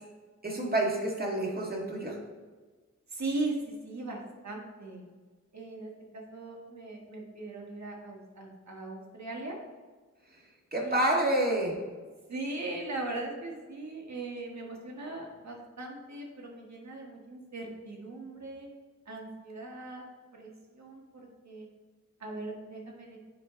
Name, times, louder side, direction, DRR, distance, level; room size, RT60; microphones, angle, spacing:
voice 1, 0.4-2.2 10.7-11.7, right 1 dB, 30° right, -2 dB, 1.9 m, -28 dB
voice 2, 3.1-5.0 5.5-9.6 10.8-11.0 12.3-18.7 19.1-20.0 20.3-21.0 21.4-21.7 22.2-23.2, right 2 dB, 60° right, -1 dB, 1.6 m, -39 dB
9.6 x 3.2 x 3.6 m, 1.4 s
cardioid pair, 45°, 31 cm